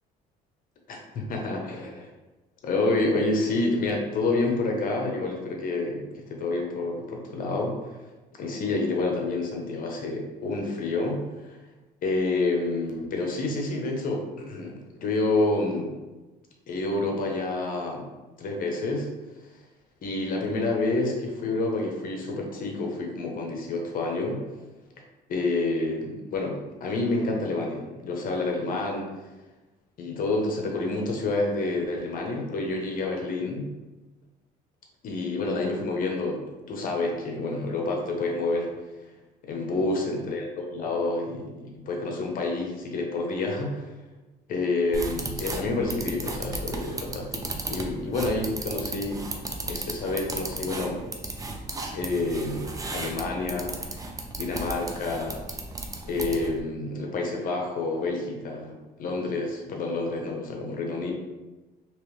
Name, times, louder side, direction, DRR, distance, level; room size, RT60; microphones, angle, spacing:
voice 1, 0.9-2.1 2.6-7.7 8.4-11.6 12.0-15.9 16.7-18.0 18.4-19.1 20.0-24.4 25.3-29.1 30.0-33.7 35.0-38.7 39.4-43.9 44.5-49.2 49.7-51.0 51.9-54.1 54.4-55.4 56.0-61.1, left 2 dB, 55° left, 0 dB, 0.9 m, -28 dB
sound 1, 44.9-56.6, right 2 dB, 20° right, 0.5 m, -35 dB
3.3 x 3.0 x 3.1 m, 1.2 s
cardioid pair, 110°, 17 cm